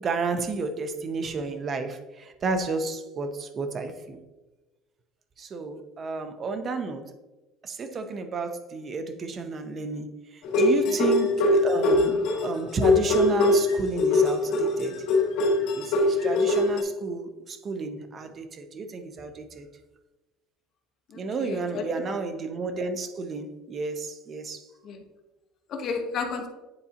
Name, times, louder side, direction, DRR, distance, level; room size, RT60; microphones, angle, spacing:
voice 1, 0.0-4.2 5.4-7.1 7.6-15.0 15.8-19.7 21.1-24.6, right 4 dB, 25° right, 8 dB, 0.6 m, -32 dB
sound 1, 10.4-16.8, left 2 dB, 65° left, 2.1 m, -22 dB
voice 2, 21.1-21.9 24.8-25.0 25.7-26.5, left 5 dB, 35° left, 4 dB, 0.8 m, -33 dB
9.6 x 4.1 x 2.8 m, 1.1 s
cardioid pair, 165°, 0 cm